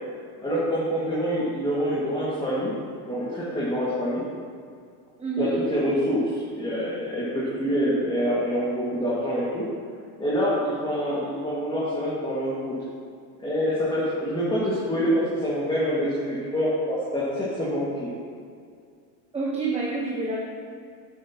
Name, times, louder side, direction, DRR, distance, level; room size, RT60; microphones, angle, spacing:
voice 1, 0.4-2.7 3.1-4.2 5.4-9.7 10.2-12.8 13.4-18.1, equal, 10° left, -9 dB, 1.9 m, -26 dB
voice 2, 5.2-5.6 19.3-20.4, right 3 dB, 15° right, -4 dB, 1.1 m, -28 dB
9.4 x 8.2 x 2.9 m, 2.3 s
supercardioid pair, 125°, 47 cm